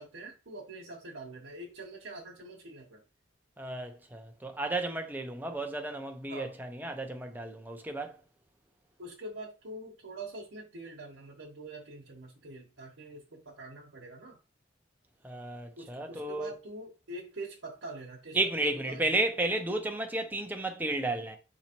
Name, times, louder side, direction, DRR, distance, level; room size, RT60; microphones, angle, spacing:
voice 1, 0.0-3.0 6.3-6.5 9.0-14.4 15.8-19.0, right 2 dB, 80° right, 1.1 m, -44 dB
voice 2, 3.6-8.2 15.2-16.5 18.3-21.4, right 2 dB, 10° right, 0.6 m, -33 dB
3.9 x 2.9 x 4.4 m
head